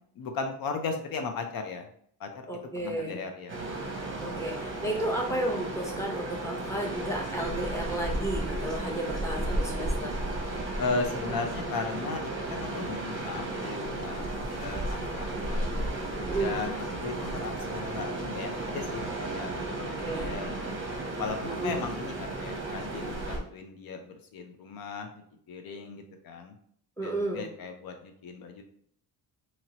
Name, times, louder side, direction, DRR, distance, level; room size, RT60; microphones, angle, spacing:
voice 1, 0.2-1.9 2.2-2.5 2.8-3.6 10.8-14.3 14.6-15.8 16.4-20.8 21.2-25.1 25.5-26.6 27.0-28.6, left 4 dB, 65° left, 5 dB, 0.6 m, -36 dB
voice 2, 2.5-3.2 4.2-10.2 16.1-16.6 19.8-20.4 21.4-21.9 27.0-27.4, right 1 dB, 10° left, -1 dB, 0.7 m, -33 dB
sound 1, 3.5-23.4, right 2 dB, 30° right, 0.7 m, -34 dB
2.8 x 2.8 x 2.8 m, 0.63 s
cardioid pair, 115°, 38 cm